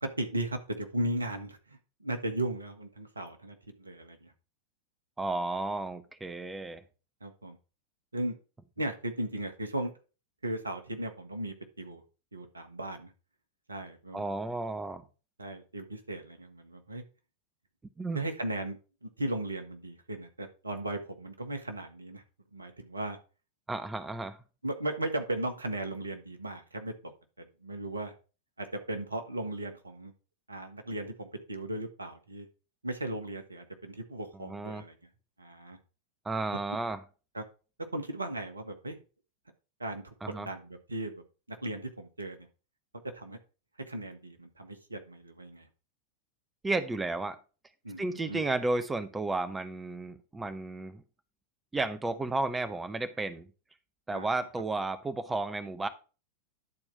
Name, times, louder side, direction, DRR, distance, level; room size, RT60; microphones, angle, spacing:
voice 1, 0.0-4.3 7.2-7.6 8.1-8.4 8.8-9.9 10.4-12.0 12.3-13.1 13.7-14.3 15.4-17.0 18.1-22.2 22.5-23.2 24.6-27.1 27.4-28.1 28.6-30.1 30.5-32.5 32.8-35.0 35.4-35.8 37.3-37.4 37.9-39.0 39.8-42.5 43.1-43.4 43.9-45.7 47.8-48.4 54.1-54.5, right 1 dB, 80° right, 7 dB, 1.5 m, -37 dB
voice 2, 5.2-6.8 14.1-15.0 18.0-18.2 23.7-24.4 34.5-34.8 36.2-37.0 40.2-40.5 46.6-47.4 48.0-51.0 51.7-53.5 54.1-55.9, right 2 dB, 10° right, 11 dB, 0.8 m, -33 dB
10.5 x 4.5 x 5.8 m, 0.33 s
figure-of-eight pair, 90°, 0 cm